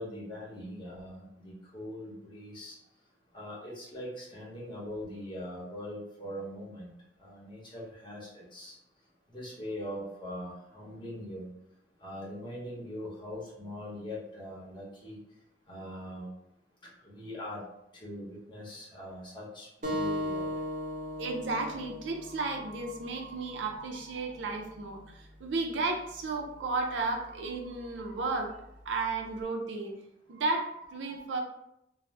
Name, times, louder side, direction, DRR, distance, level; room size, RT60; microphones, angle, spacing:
voice 1, 0.0-2.8 3.3-6.9 7.2-8.7 9.3-11.5 12.0-15.2 15.7-16.3 17.0-17.6 18.0-20.5, left 1 dB, 25° left, -5 dB, 0.9 m, -41 dB
sound 1, 19.8-25.0, left 1 dB, 40° right, 0.8 m, -38 dB
voice 2, 21.2-28.6 28.9-29.9 30.3-31.4, right 3 dB, 75° right, 2 dB, 0.5 m, -33 dB
2.5 x 2.0 x 3.2 m, 0.80 s
head